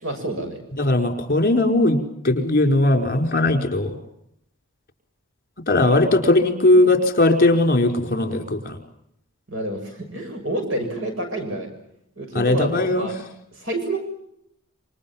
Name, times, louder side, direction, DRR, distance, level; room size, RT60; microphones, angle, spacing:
voice 1, 0.0-0.6 9.5-11.7 12.2-13.1 13.5-14.0, right 1 dB, 65° right, 5 dB, 6.8 m, -28 dB
voice 2, 0.7-4.0 5.7-8.8 12.3-13.1, left 2 dB, 40° left, 6 dB, 4.9 m, -19 dB
28.0 x 26.5 x 7.3 m, 0.76 s
head